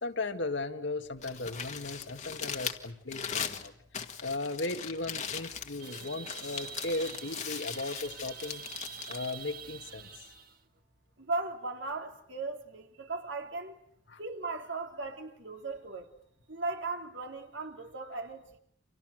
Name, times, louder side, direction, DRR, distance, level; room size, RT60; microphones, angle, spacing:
voice 1, 0.0-3.7 4.2-8.6 9.1-10.1 14.1-14.2, left 2 dB, 70° left, 2.0 m, -36 dB
Crumpling crinkling, 1.1-10.2, left 7 dB, 40° left, 1.8 m, -40 dB
sound 1, 5.8-10.6, right 8 dB, 50° right, 1.7 m, -46 dB
voice 2, 11.2-13.8 14.2-16.1 16.5-18.5, right 3 dB, 75° right, 3.2 m, -37 dB
30.0 x 26.0 x 6.4 m
head